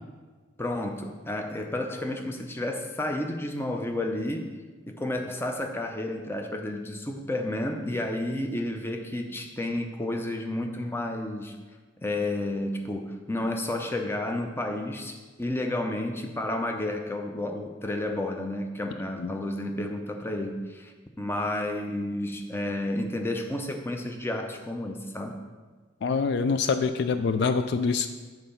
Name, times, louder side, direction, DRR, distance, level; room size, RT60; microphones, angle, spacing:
voice 1, 0.6-4.5 4.9-11.6 12.0-25.4, left 1 dB, 10° left, 3 dB, 0.5 m, -31 dB
voice 2, 26.0-28.1, left 5 dB, 60° left, 9 dB, 0.3 m, -25 dB
7.3 x 3.9 x 5.6 m, 1.4 s
head